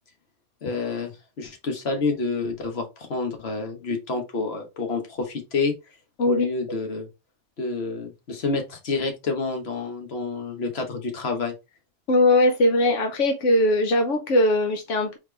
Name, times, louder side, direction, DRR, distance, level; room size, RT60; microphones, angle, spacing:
voice 1, 0.6-5.7 6.3-7.1 7.6-11.5, left 3 dB, 60° left, 1.4 m, -28 dB
voice 2, 12.1-15.2, left 1 dB, 90° left, 1.2 m, -20 dB
4.1 x 3.3 x 3.2 m
omnidirectional pair, 1.2 m